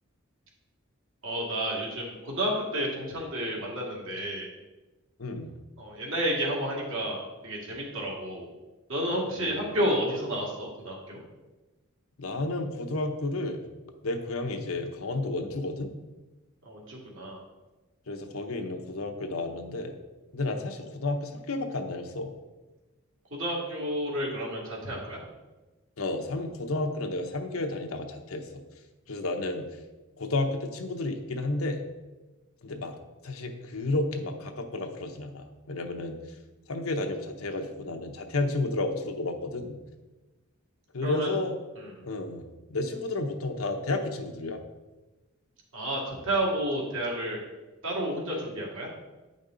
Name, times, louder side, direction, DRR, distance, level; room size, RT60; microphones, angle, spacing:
voice 1, 1.2-4.5 5.8-8.5 8.9-11.2 16.6-17.4 23.3-25.2 41.0-41.3 41.8-41.9 45.7-47.4 47.8-48.9, right 1 dB, 65° right, -3 dB, 2.3 m, -31 dB
voice 2, 5.2-5.5 9.3-9.5 12.2-13.6 14.0-15.9 18.1-19.9 20.3-22.3 26.0-28.6 29.1-29.6 30.2-31.8 32.6-32.9 33.2-36.2 36.7-39.8 40.9-41.6 42.0-42.4 42.7-44.6, left 2 dB, 80° left, 5 dB, 0.9 m, -31 dB
9.1 x 5.3 x 3.8 m, 1.1 s
head